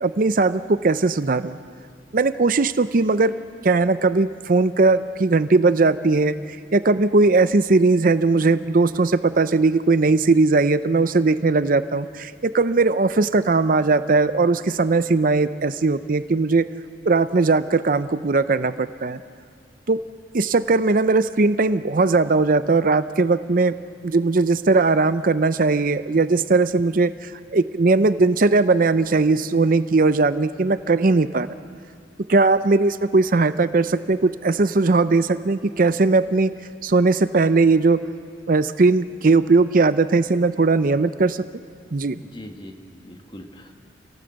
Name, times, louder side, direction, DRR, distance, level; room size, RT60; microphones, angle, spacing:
voice 1, 0.0-1.6 2.1-3.3 3.6-6.3 6.7-16.7 17.1-19.2 19.9-20.0 20.3-23.7 24.0-31.5 32.3-36.5 36.8-38.0 38.5-41.4 41.9-42.2, right 3 dB, 50° right, 13 dB, 0.6 m, -19 dB
voice 2, 42.2-43.7, left 1 dB, 25° left, 4 dB, 1.7 m, -41 dB
28.5 x 17.5 x 8.0 m, 2.3 s
head